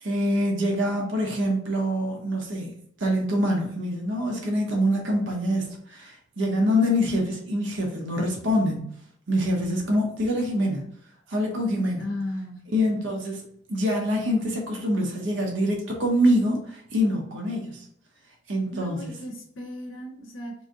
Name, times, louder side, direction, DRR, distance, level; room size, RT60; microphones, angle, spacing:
voice 1, 0.0-2.7 3.0-8.9 9.3-10.9 11.3-12.1 12.7-17.8 18.5-19.1, equal, 80° right, 0 dB, 0.8 m, -25 dB
voice 2, 12.0-12.7 18.7-20.5, left 1 dB, 85° left, 2 dB, 0.6 m, -35 dB
3.1 x 2.6 x 3.7 m, 0.66 s
head